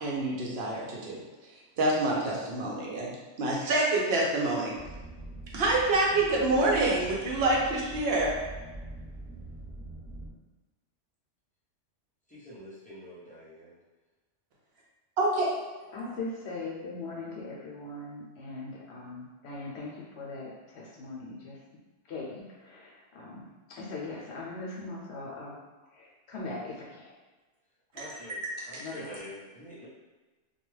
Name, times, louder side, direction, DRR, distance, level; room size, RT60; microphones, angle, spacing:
voice 1, 0.0-1.2 1.8-3.1 3.4-4.7 5.5-8.4 15.2-15.5 28.0-28.2 28.7-28.8, right 2 dB, 60° right, -3 dB, 0.8 m, -27 dB
sound 1, 4.7-10.3, right 2 dB, 25° right, 0.9 m, -43 dB
voice 2, 12.3-13.7 27.9-28.4 28.7-29.9, equal, 10° left, -9 dB, 0.4 m, -46 dB
voice 3, 15.9-21.6 22.1-25.6 25.9-27.2 28.8-29.2, left 3 dB, 70° left, -3 dB, 0.8 m, -40 dB
2.3 x 2.2 x 3.1 m, 1.2 s
omnidirectional pair, 1.2 m